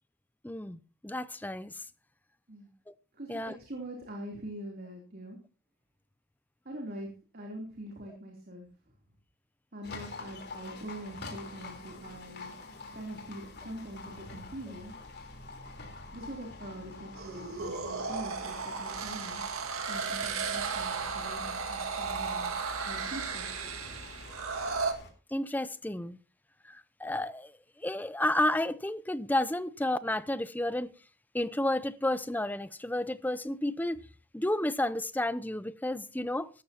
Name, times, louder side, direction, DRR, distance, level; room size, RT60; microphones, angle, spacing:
voice 1, 0.4-1.8 2.9-3.0 3.3-3.5 25.3-26.2 26.7-27.5 27.8-30.9 31.3-34.0 34.3-36.5, left 1 dB, 10° left, 0.5 m, -31 dB
voice 2, 3.1-5.4 6.6-8.7 9.7-12.5 12.9-15.0 16.1-19.4 19.9-22.5 22.9-23.5, right 1 dB, 45° right, 3.3 m, -43 dB
Livestock farm animals working animals, 9.8-25.1, left 3 dB, 50° left, 3.9 m, -47 dB
sound 1, 17.2-24.9, right 5 dB, 75° right, 2.0 m, -35 dB
17.0 x 13.5 x 2.9 m
head